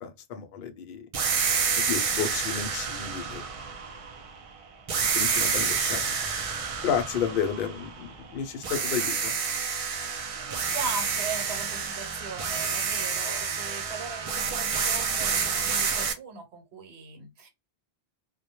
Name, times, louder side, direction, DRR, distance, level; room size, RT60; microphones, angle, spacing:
voice 1, 0.0-1.0 1.8-3.5 5.1-6.0 6.8-9.3, left 7 dB, 65° left, 0.7 m, -31 dB
sound 1, 1.1-4.4 4.9-8.3 8.6-16.1, right 6 dB, 50° right, 0.4 m, -29 dB
voice 2, 9.9-17.5, right 4 dB, 85° right, 1.1 m, -39 dB
2.2 x 2.1 x 2.8 m
omnidirectional pair, 1.0 m